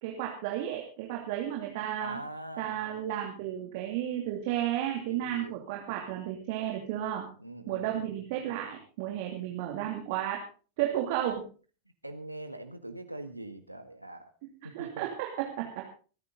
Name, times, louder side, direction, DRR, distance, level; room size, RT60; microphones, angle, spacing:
voice 1, 0.0-2.2 2.6-7.2 7.7-10.4 10.8-11.5 14.7-15.8, right 11 dB, 50° right, 0 dB, 2.8 m, -33 dB
voice 2, 2.0-2.9 5.1-5.6 7.4-8.1 12.0-14.2 14.8-15.1, right 1 dB, 85° right, 8 dB, 1.6 m, -42 dB
25.5 x 9.6 x 3.9 m, 0.38 s
figure-of-eight pair, 90°, 0 cm